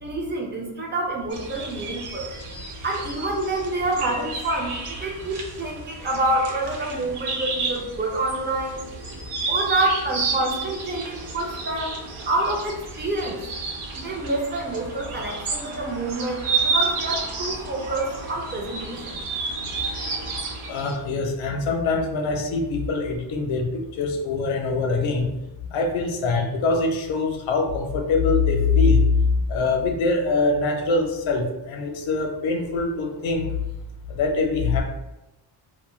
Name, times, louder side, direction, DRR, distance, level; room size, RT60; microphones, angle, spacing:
voice 1, 0.0-2.3 2.8-8.8 9.5-13.4 13.9-19.2, right 2 dB, 25° right, 0 dB, 0.5 m, -27 dB
sound 1, 1.3-21.0, right 4 dB, 85° right, 0.7 m, -31 dB
voice 2, 20.7-23.7 24.0-25.3 25.7-29.1 29.5-33.5 34.1-34.8, left 3 dB, 70° left, 2 dB, 0.7 m, -23 dB
2.7 x 2.1 x 3.1 m, 0.96 s
cardioid pair, 125°, 49 cm